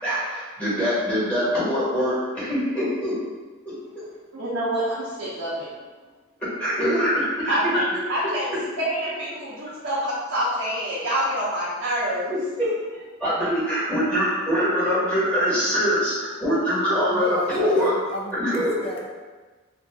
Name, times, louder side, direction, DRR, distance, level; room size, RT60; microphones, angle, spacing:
voice 1, 0.0-3.1 3.6-4.0 6.6-7.8 12.6-12.7 12.9-17.3 17.5-17.9 18.3-18.7, equal, 5° left, -11 dB, 1.2 m, -23 dB
voice 2, 4.3-5.7 7.5-8.5 8.8-12.3, equal, 65° right, -9 dB, 0.7 m, -27 dB
voice 3, 17.1-19.1, equal, 25° left, -1 dB, 0.4 m, -34 dB
2.7 x 2.5 x 3.4 m, 1.3 s
head